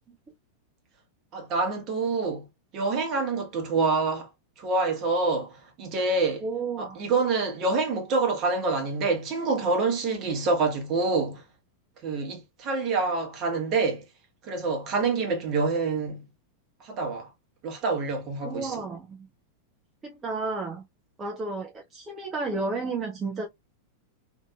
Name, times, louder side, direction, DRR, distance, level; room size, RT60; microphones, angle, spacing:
voice 1, 1.3-2.5 2.7-4.3 4.6-6.4 6.8-11.4 12.0-14.0 14.4-16.2 16.8-17.3 17.6-18.8, right 3 dB, 35° right, 1.1 m, -26 dB
voice 2, 6.4-7.0 18.4-19.3 20.0-20.8 21.2-23.5, right 3 dB, 20° right, 0.6 m, -32 dB
2.8 x 2.6 x 2.3 m
figure-of-eight pair, 90°, 0 cm